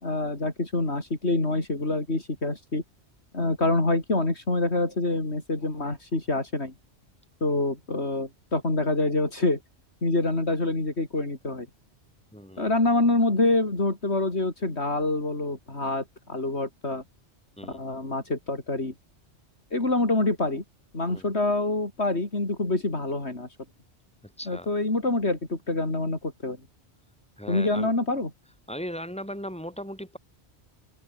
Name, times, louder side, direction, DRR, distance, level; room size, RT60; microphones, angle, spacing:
voice 1, 0.0-2.8 3.3-6.7 7.4-9.6 10.0-11.7 12.6-17.0 17.6-18.9 19.7-20.6 20.9-23.5 24.5-26.6 27.5-28.3, left 2 dB, 70° left, 4.7 m, -26 dB
voice 2, 12.3-12.7 17.6-17.8 21.1-21.3 24.2-24.7 27.4-27.9 28.7-30.2, equal, 5° left, 6.8 m, -37 dB
open air
omnidirectional pair, 1.1 m